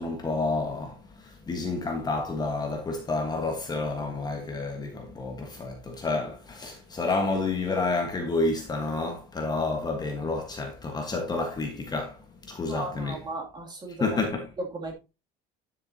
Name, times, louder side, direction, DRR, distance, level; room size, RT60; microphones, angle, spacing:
voice 1, 0.0-13.2 14.0-14.5, left 3 dB, 20° left, 1.4 m, -30 dB
voice 2, 12.7-14.2 14.6-14.9, right 2 dB, 20° right, 2.6 m, -36 dB
10.5 x 6.8 x 2.8 m
cardioid pair, 160°, 20 cm